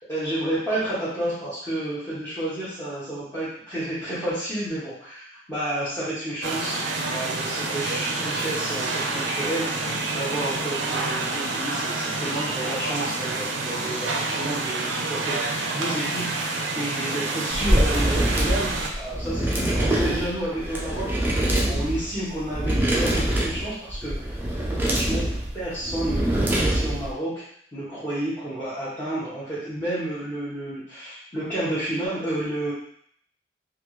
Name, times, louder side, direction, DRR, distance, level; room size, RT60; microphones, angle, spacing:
voice 1, 0.0-6.8 7.1-24.4 24.7-25.3 25.5-26.2 26.6-27.4 27.7-32.7, right 1 dB, 15° left, -14 dB, 1.0 m, -31 dB
sound 1, 6.4-18.9, right 3 dB, 85° right, 0.5 m, -28 dB
sound 2, 17.5-27.1, right 1 dB, 10° right, 0.4 m, -24 dB
3.4 x 2.4 x 3.1 m, 0.65 s
head